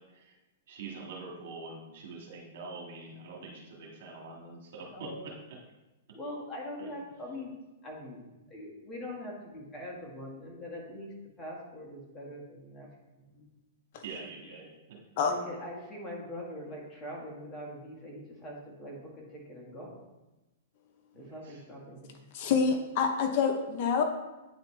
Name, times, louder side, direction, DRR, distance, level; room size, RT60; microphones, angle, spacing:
voice 1, 0.7-5.3 6.8-6.9 14.0-15.0 15.3-15.5 21.3-21.6, right 3 dB, 60° right, -1 dB, 1.9 m, -44 dB
voice 2, 4.9-5.3 6.1-7.5 7.8-13.5 14.4-14.6 15.2-20.0 21.1-22.3 22.6-22.7, left 1 dB, 15° left, -3 dB, 1.7 m, -43 dB
voice 3, 22.3-24.0, left 6 dB, 50° left, 5 dB, 0.7 m, -27 dB
8.9 x 4.1 x 3.3 m, 1.1 s
hypercardioid pair, 135°, 0 cm